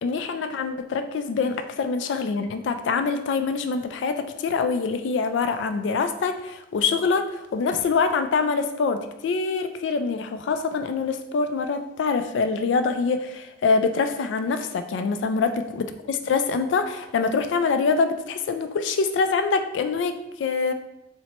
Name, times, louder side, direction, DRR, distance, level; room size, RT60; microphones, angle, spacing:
voice 1, 0.0-20.7, left 4 dB, 75° left, 9 dB, 0.3 m, -25 dB
4.2 x 2.1 x 2.9 m, 0.89 s
head